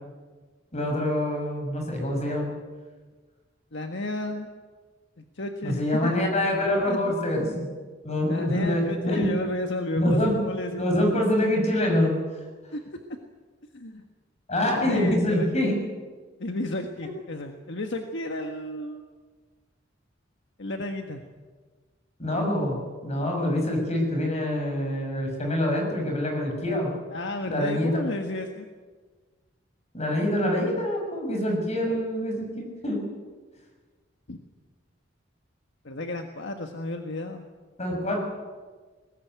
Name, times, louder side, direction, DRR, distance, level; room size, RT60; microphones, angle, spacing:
voice 1, 0.7-2.5 5.6-7.7 8.0-9.3 9.9-10.3 10.8-12.1 14.5-15.8 22.2-26.9 27.5-28.0 29.9-33.0 37.8-38.2, left 1 dB, 35° left, 2 dB, 6.8 m, -25 dB
voice 2, 3.7-4.5 5.2-6.2 6.9-7.1 8.3-10.9 12.7-13.0 13.7-14.0 14.7-15.8 16.4-19.0 20.6-21.3 27.1-28.7 34.3-34.4 35.8-37.4, left 1 dB, 65° left, 4 dB, 1.6 m, -32 dB
22.0 x 19.0 x 9.4 m, 1.4 s
head